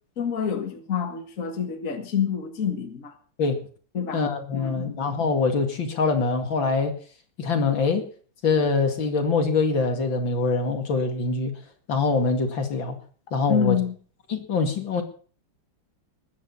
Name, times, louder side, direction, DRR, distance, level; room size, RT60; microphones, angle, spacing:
voice 1, 0.2-3.2 3.9-4.3 4.5-5.0 13.5-14.0, left 7 dB, 40° left, 1.9 m, -27 dB
voice 2, 4.1-7.0 7.4-8.1 8.4-11.5 11.9-13.0 13.3-13.8 14.3-15.0, left 4 dB, 65° left, 2.9 m, -24 dB
20.5 x 9.7 x 5.5 m
omnidirectional pair, 2.3 m